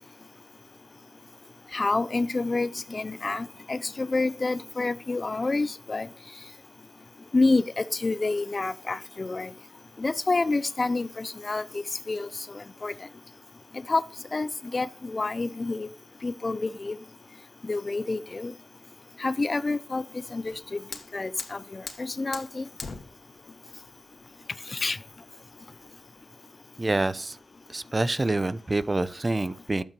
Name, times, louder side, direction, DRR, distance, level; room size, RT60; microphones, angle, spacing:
voice 1, 1.7-6.1 7.3-9.5 10.0-12.9 13.7-14.0 14.3-15.9 16.2-17.0 17.6-18.5 19.2-20.8 21.1-22.7 24.7-25.0, left 3 dB, 35° left, 0.6 m, -28 dB
Fire, 20.3-26.3, left 4 dB, 65° left, 2.3 m, -44 dB
voice 2, 26.8-27.4 27.7-29.8, right 2 dB, 25° right, 0.8 m, -27 dB
12.0 x 8.8 x 5.4 m
cardioid pair, 80°, 0 cm